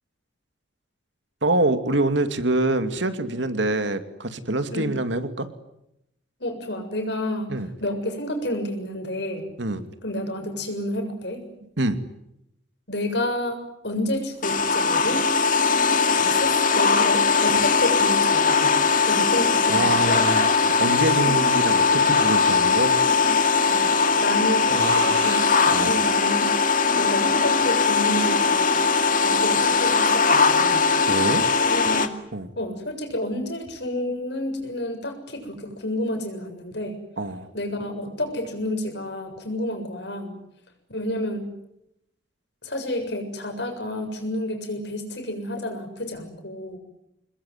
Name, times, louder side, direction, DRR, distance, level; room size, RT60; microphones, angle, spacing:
voice 1, 1.4-5.5 7.5-7.7 9.6-9.9 11.8-12.0 19.7-23.0 24.7-25.9 31.1-31.5 32.3-32.5 37.2-37.5, right 2 dB, 80° right, 9 dB, 2.4 m, -25 dB
voice 2, 6.4-7.5 7.8-9.4 10.0-11.4 12.9-15.3 16.2-18.8 19.1-20.2 23.7-23.9 24.2-26.5 26.9-28.9 29.2-30.9 31.7-32.2 32.6-37.0 37.5-40.4 40.9-41.5 42.6-46.8, left 1 dB, 65° left, 6 dB, 7.2 m, -30 dB
sound 1, 14.4-32.1, left 5 dB, 45° left, 2.2 m, -20 dB
26.5 x 21.5 x 9.7 m, 0.82 s
head